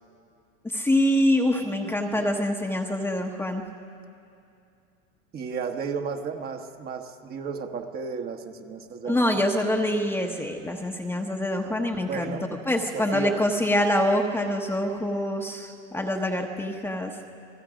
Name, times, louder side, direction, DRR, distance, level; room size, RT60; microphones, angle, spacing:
voice 1, 0.6-3.6 9.0-12.3 12.7-17.1, left 1 dB, 5° left, 2 dB, 1.1 m, -25 dB
voice 2, 1.8-2.3 5.3-9.4 12.0-12.5 12.9-13.4, right 6 dB, 25° right, 4 dB, 1.3 m, -34 dB
29.5 x 21.0 x 5.1 m, 2.6 s
supercardioid pair, 145°, 36 cm